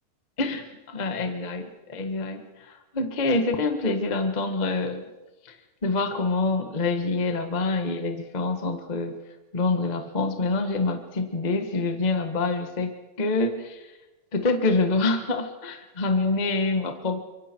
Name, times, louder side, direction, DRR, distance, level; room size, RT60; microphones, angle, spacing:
voice 1, 0.4-5.0 5.5-5.6 5.8-9.1 9.5-13.9 14.3-17.2, left 3 dB, 75° left, 6 dB, 0.4 m, -26 dB
25.5 x 24.0 x 4.6 m, 1.1 s
omnidirectional pair, 3.9 m